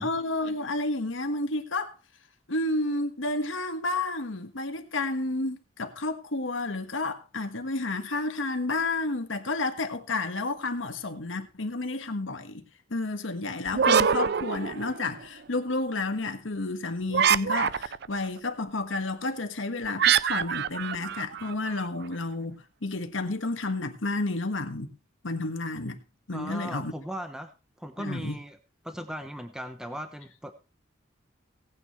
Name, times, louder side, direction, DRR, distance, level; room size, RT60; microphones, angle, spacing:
voice 1, 0.0-1.9 2.5-12.6 12.9-24.9 25.2-26.0 26.3-26.9 28.0-28.4, left 2 dB, 90° left, 1.6 m, -31 dB
sound 1, 13.7-15.2 17.1-18.2 20.0-21.9, right 7 dB, 60° right, 0.5 m, -25 dB
voice 2, 26.3-27.5 27.8-28.6 28.8-30.5, equal, 5° right, 1.1 m, -37 dB
18.0 x 9.1 x 3.2 m
head